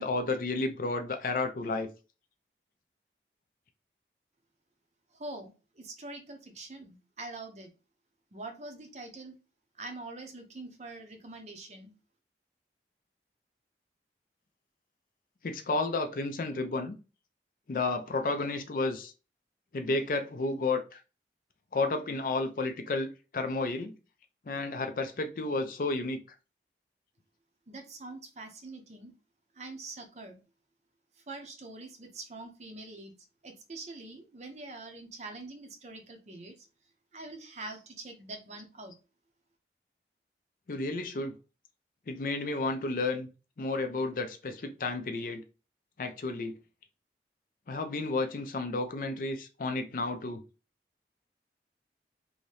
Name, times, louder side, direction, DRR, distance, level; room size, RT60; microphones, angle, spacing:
voice 1, 0.0-1.9 15.4-16.9 17.7-19.1 19.7-21.0 21.7-23.9 24.5-26.2 40.7-41.4 42.1-43.3 43.6-45.4 46.0-46.5 47.7-50.4, left 3 dB, 50° left, 0.4 m, -32 dB
voice 2, 5.1-7.7 8.3-9.4 9.8-11.9 27.7-29.1 29.5-30.4 31.1-33.1 33.4-36.7 37.1-38.9, right 2 dB, 40° right, 0.6 m, -44 dB
2.8 x 2.6 x 3.1 m
head